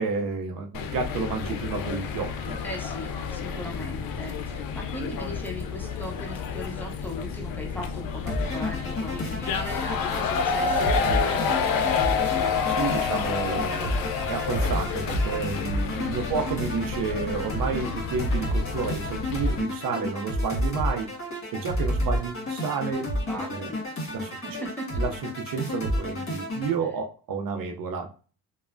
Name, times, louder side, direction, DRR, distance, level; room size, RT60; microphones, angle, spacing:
voice 1, 0.0-2.6 12.7-21.1 21.5-23.7 24.1-28.1, right 5 dB, 55° right, 4 dB, 0.6 m, -31 dB
sound 1, 0.7-19.6, left 6 dB, 55° left, 0.5 m, -29 dB
voice 2, 2.6-11.8 15.9-16.3 23.3-23.8 24.3-25.0, equal, 5° left, 0 dB, 0.7 m, -39 dB
sound 2, 8.3-26.7, equal, 30° left, 1.4 m, -31 dB
3.0 x 2.0 x 2.4 m, 0.36 s
supercardioid pair, 75°, 41 cm